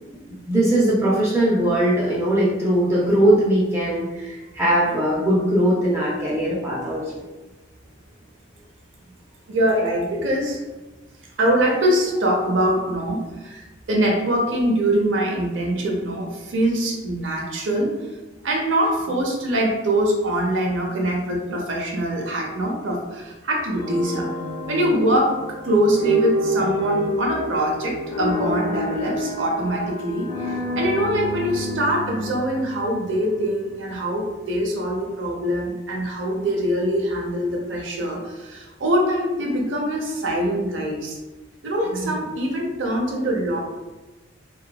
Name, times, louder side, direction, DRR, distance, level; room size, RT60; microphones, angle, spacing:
voice 1, 0.1-7.0 30.5-30.6, right 1 dB, 15° right, -6 dB, 0.4 m, -20 dB
voice 2, 9.5-10.6 11.4-17.9 18.4-24.3 24.7-30.5 30.8-41.2 41.6-43.6, right 1 dB, 80° right, 0 dB, 0.6 m, -23 dB
sound 1, 23.7-33.8, equal, 85° left, 0.7 m, -28 dB
2.8 x 2.3 x 2.2 m, 1.1 s
head